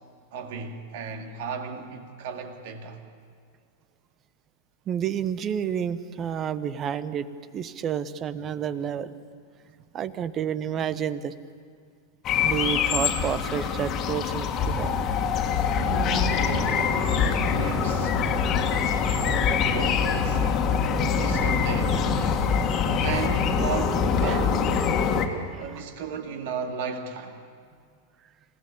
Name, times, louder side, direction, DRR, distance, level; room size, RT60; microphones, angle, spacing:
voice 1, 0.3-3.0 15.8-18.7 19.0-20.4 21.1-22.0 23.0-25.0 25.6-27.4, right 5 dB, 50° right, 2.2 m, -35 dB
voice 2, 4.9-7.3 7.5-9.2 9.9-11.3 12.4-14.9 24.2-24.4 25.5-25.6, right 8 dB, 30° right, 1.0 m, -30 dB
sound 1, 12.2-25.3, left 6 dB, 30° left, 2.0 m, -24 dB
27.5 x 17.5 x 8.7 m
figure-of-eight pair, 90°, 0 cm